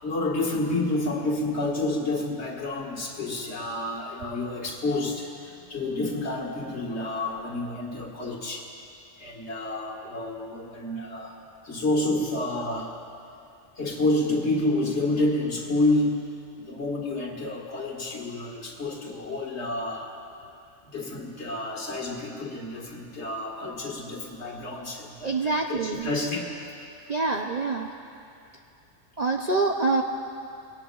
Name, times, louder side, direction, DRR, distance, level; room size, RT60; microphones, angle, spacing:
voice 1, 0.0-8.7 9.2-11.4 11.6-13.0 13.8-16.3 16.7-20.2 20.8-26.5, left 2 dB, 60° left, -1 dB, 2.0 m, -29 dB
voice 2, 25.2-26.1 27.1-27.9 29.2-30.0, right 3 dB, 45° right, 1 dB, 0.6 m, -25 dB
22.0 x 17.5 x 2.4 m, 2.6 s
omnidirectional pair, 1.3 m